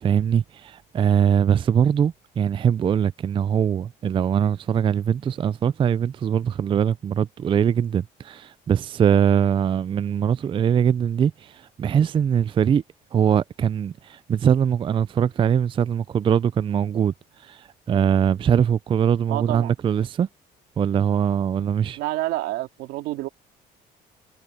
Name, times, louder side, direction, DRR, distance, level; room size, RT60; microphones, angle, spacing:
voice 1, 0.0-12.8 13.1-17.1 17.5-20.3 20.8-22.0, right 8 dB, 30° right, 0.4 m, -22 dB
voice 2, 19.3-19.7 22.0-23.3, right 16 dB, 90° right, 2.6 m, -28 dB
cardioid pair, 110°, 17 cm